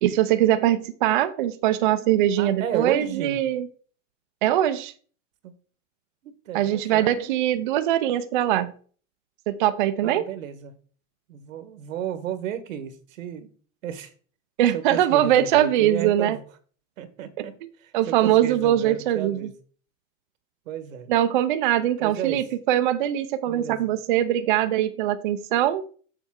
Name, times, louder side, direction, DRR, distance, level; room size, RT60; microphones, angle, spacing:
voice 1, 0.0-3.7 4.4-4.9 6.5-8.7 9.5-10.2 14.6-16.4 17.4-17.5 17.9-19.5 21.1-25.8, right 12 dB, 40° right, 0.4 m, -22 dB
voice 2, 2.4-3.4 5.4-5.5 6.2-7.3 10.0-10.8 11.3-13.5 13.8-14.1 14.7-16.4 17.0-17.5 17.8-19.5 20.6-21.1 22.0-22.5 23.5-23.9, right 9 dB, 80° right, 1.4 m, -33 dB
7.1 x 6.7 x 3.7 m
supercardioid pair, 175°, 39 cm